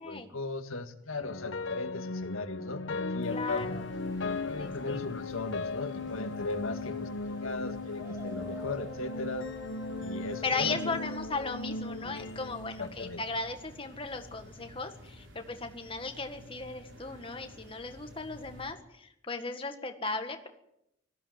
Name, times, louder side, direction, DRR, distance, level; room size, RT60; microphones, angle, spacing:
voice 1, 0.0-3.8 4.4-9.5 9.9-10.9 12.8-13.3, left 3 dB, 85° left, 8 dB, 1.9 m, -38 dB
sound 1, 1.2-13.5, left 3 dB, 65° left, 1.1 m, -37 dB
sound 2, 3.2-18.7, left 1 dB, 60° right, 4.8 m, -52 dB
voice 2, 3.3-3.8 4.6-5.0 10.4-20.5, left 3 dB, 25° left, 6 dB, 1.7 m, -36 dB
sound 3, 8.0-12.2, equal, 15° right, 1.3 m, -47 dB
19.0 x 14.5 x 9.5 m, 0.82 s
head